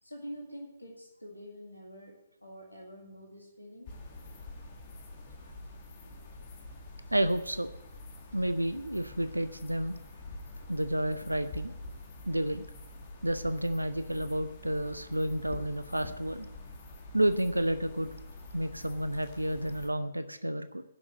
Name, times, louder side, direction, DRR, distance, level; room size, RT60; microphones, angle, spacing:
voice 1, 0.0-4.0, equal, 90° left, -1 dB, 2.2 m, -46 dB
sound 1, 3.9-19.9, left 2 dB, 40° left, 2.2 m, -46 dB
voice 2, 7.1-7.7 8.3-10.0 10.7-11.7 12.3-12.7 13.2-16.5 17.1-18.1 18.5-20.8, right 1 dB, 90° right, 11 dB, 0.6 m, -30 dB
10.5 x 6.3 x 8.8 m, 0.85 s
figure-of-eight pair, 130°, 0 cm